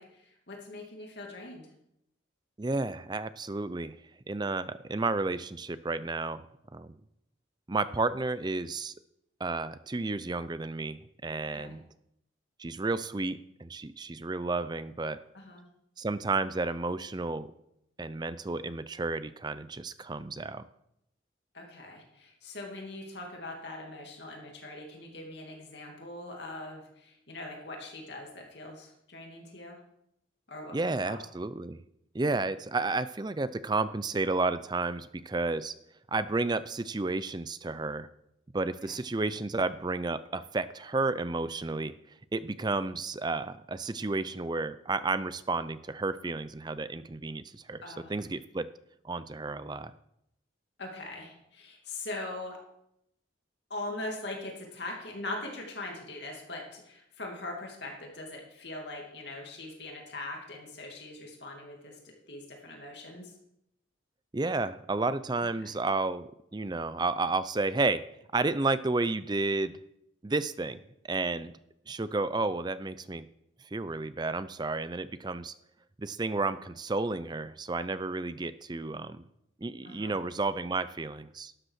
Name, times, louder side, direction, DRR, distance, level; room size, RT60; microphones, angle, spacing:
voice 1, 0.0-1.7 11.5-11.7 15.3-15.7 21.5-29.8 30.5-31.2 38.8-39.0 47.8-48.1 50.8-52.6 53.7-63.3 65.6-65.7 79.8-80.1, left 2 dB, 60° left, 0 dB, 2.5 m, -41 dB
voice 2, 2.6-4.0 4.3-6.5 6.7-7.0 7.7-8.9 9.4-11.8 12.6-15.2 16.0-17.5 18.0-20.6 30.7-31.8 32.1-35.7 36.1-38.1 38.5-41.9 42.3-47.8 48.1-48.7 49.0-49.9 64.3-68.0 68.3-69.8 70.2-70.8 71.1-71.5 71.9-73.3 73.7-75.5 76.0-79.2 79.6-81.5, right 3 dB, 20° right, 14 dB, 0.5 m, -31 dB
12.0 x 8.0 x 6.4 m, 0.78 s
head